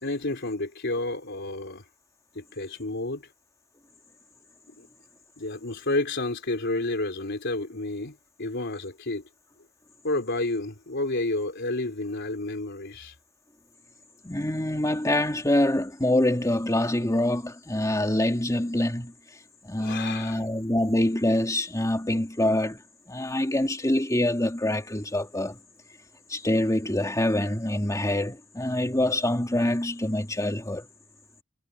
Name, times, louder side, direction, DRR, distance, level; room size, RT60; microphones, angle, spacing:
voice 1, 0.0-1.8 2.3-3.3 4.8-4.9 5.4-9.2 10.0-13.2 19.8-20.4, left 2 dB, 60° left, 3.7 m, -30 dB
voice 2, 14.2-19.1 19.6-22.8 23.1-25.6 26.3-30.9, left 1 dB, 15° left, 2.4 m, -25 dB
head